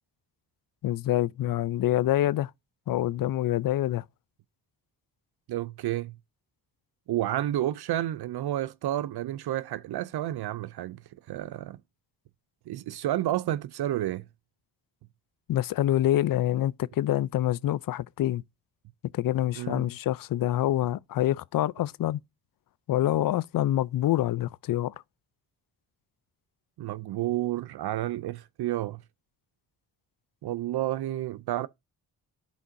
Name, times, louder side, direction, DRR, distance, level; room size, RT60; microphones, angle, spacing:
voice 1, 0.8-2.5 2.9-4.0 15.5-18.4 19.1-22.2 22.9-24.9, left 13 dB, 55° left, 0.4 m, -26 dB
voice 2, 5.5-6.2 7.1-11.0 11.3-11.8 12.7-14.2 19.6-19.8 26.8-29.0 30.4-31.7, right 13 dB, 60° right, 0.5 m, -30 dB
11.5 x 5.1 x 2.6 m
supercardioid pair, 50°, 43 cm